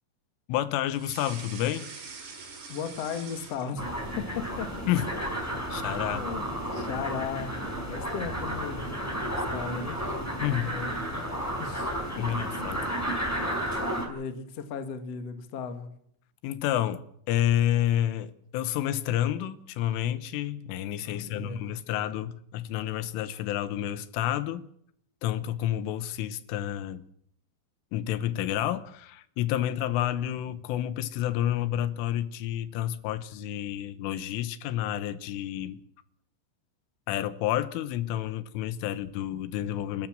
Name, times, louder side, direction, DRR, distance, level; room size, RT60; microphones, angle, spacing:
voice 1, 0.5-1.9 4.9-5.1 5.4-6.3 10.4-10.8 12.2-12.8 16.4-24.7 25.2-27.1 27.9-35.8 37.1-40.1, left 12 dB, 90° left, 3.6 m, -30 dB
sound 1, 0.9-4.1 4.5-5.2, right 4 dB, 45° right, 5.0 m, -44 dB
voice 2, 2.7-3.8 4.2-4.7 6.1-6.5 6.7-10.1 10.5-11.9 12.6-12.7 14.1-15.9 21.0-21.7, left 6 dB, 55° left, 1.8 m, -36 dB
sound 2, 3.8-14.1, right 1 dB, 5° left, 4.0 m, -32 dB
28.5 x 12.5 x 7.5 m
omnidirectional pair, 5.6 m